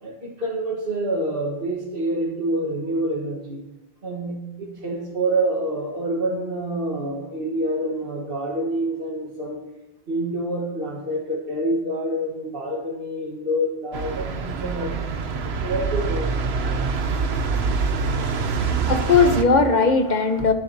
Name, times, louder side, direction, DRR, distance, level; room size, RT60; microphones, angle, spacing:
voice 1, 0.0-3.6 4.0-9.6 10.1-15.1 15.6-16.4, right 1 dB, 60° right, -3 dB, 1.9 m, -27 dB
sound 1, 13.9-19.4, right 5 dB, 90° right, 1.2 m, -25 dB
voice 2, 18.2-20.5, left 4 dB, 45° left, 6 dB, 1.3 m, -19 dB
20.0 x 10.5 x 2.9 m, 0.98 s
omnidirectional pair, 1.0 m